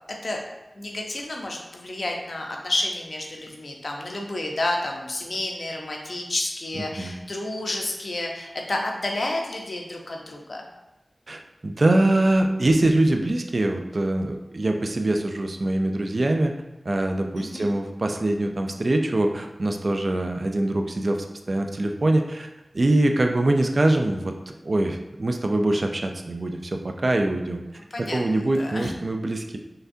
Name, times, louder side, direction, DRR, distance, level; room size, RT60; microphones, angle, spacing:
voice 1, 0.7-10.6 17.4-17.7 27.9-28.9, left 1 dB, 70° left, 1 dB, 0.8 m, -30 dB
voice 2, 6.7-7.1 11.3-16.5 16.8-22.5 22.7-24.3 24.6-27.6 28.0-29.6, right 1 dB, 60° right, 4 dB, 0.5 m, -23 dB
5.7 x 3.4 x 2.7 m, 0.98 s
wide cardioid pair, 50°, 0 cm